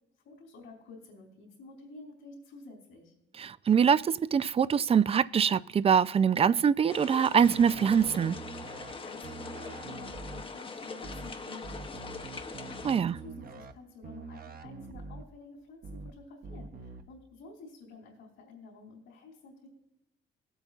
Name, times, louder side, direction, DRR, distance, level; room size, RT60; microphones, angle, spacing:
voice 1, 0.2-3.1 8.9-19.7, left 3 dB, 85° left, 3.3 m, -51 dB
voice 2, 3.4-8.4 12.8-13.1, right 7 dB, 30° right, 0.3 m, -24 dB
sound 1, 6.9-13.0, left 4 dB, 25° left, 0.8 m, -42 dB
sound 2, 7.4-8.9 9.2-10.4 11.0-11.3 11.6-13.7 14.0-15.2 15.8-16.1 16.4-17.0, right 4 dB, 50° right, 0.7 m, -44 dB
18.5 x 7.9 x 2.4 m
cardioid pair, 90°, 20 cm